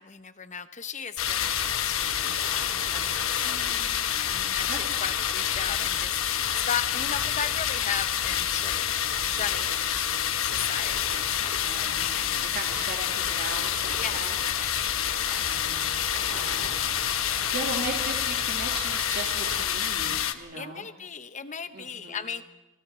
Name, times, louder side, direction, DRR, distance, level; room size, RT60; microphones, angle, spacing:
voice 1, 0.0-3.7 4.2-6.2 6.5-8.9 9.2-9.7 10.4-12.4 13.1-13.2 14.0-14.2 14.5-15.7 17.1-17.5 20.5-22.4, left 7 dB, 35° left, 11 dB, 0.9 m, -37 dB
sound 1, 1.2-20.3, left 10 dB, 80° left, 1.1 m, -28 dB
Ocean, 1.4-19.7, right 3 dB, 75° right, 2.2 m, -43 dB
voice 2, 3.4-4.0 4.7-4.8 11.6-14.3 15.4-16.0 16.5-20.9 21.7-22.3, right 3 dB, 50° right, 1 dB, 2.2 m, -38 dB
30.0 x 20.5 x 4.4 m, 1.0 s
head